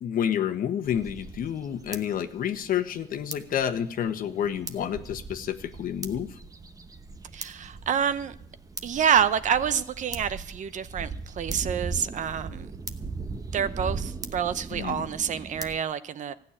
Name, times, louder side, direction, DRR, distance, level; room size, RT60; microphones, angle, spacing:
voice 1, 0.0-6.3 14.7-15.1, left 9 dB, 55° left, 1.2 m, -29 dB
sound 1, 0.8-15.8, right 4 dB, 20° right, 1.0 m, -39 dB
voice 2, 7.3-8.3 8.8-12.7 13.5-16.3, right 8 dB, 45° right, 0.7 m, -27 dB
15.0 x 6.6 x 9.9 m
cardioid pair, 110°, 17 cm